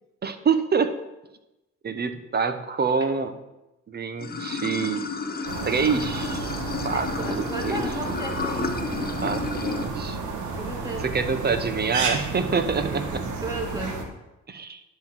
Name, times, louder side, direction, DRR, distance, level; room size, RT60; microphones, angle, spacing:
voice 1, 0.2-0.9 1.8-3.3 3.9-5.0 5.6-6.6 6.8-7.8 9.2-10.2 11.0-13.3 14.5-14.8, right 5 dB, 35° right, 9 dB, 0.9 m, -26 dB
Water / Sink (filling or washing), 4.2-9.9, left 4 dB, 30° left, 1.1 m, -31 dB
sound 1, 5.5-14.0, right 4 dB, 75° right, 1.5 m, -32 dB
voice 2, 6.9-8.8 10.6-11.1 13.4-14.0, right 1 dB, 10° right, 0 dB, 2.3 m, -34 dB
10.5 x 4.0 x 7.3 m, 0.98 s
cardioid pair, 90°, 30 cm